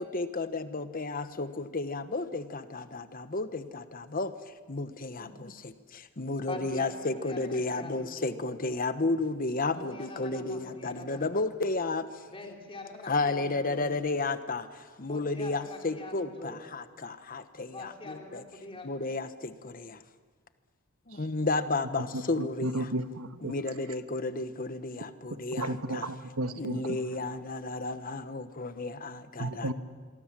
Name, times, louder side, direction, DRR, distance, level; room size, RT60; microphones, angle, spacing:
voice 1, 0.0-4.3 4.7-12.2 13.0-18.4 18.8-20.0 21.1-22.9 23.4-26.1 26.6-29.7, left 3 dB, 40° left, 11 dB, 1.1 m, -33 dB
voice 2, 6.5-8.4 9.7-11.5 12.3-13.9 15.1-16.6 17.7-18.9, left 2 dB, 25° left, 2 dB, 3.5 m, -44 dB
voice 3, 22.0-23.5 25.6-27.0 29.4-29.7, right 1 dB, 80° right, 9 dB, 1.4 m, -33 dB
26.0 x 23.5 x 7.5 m, 1.5 s
head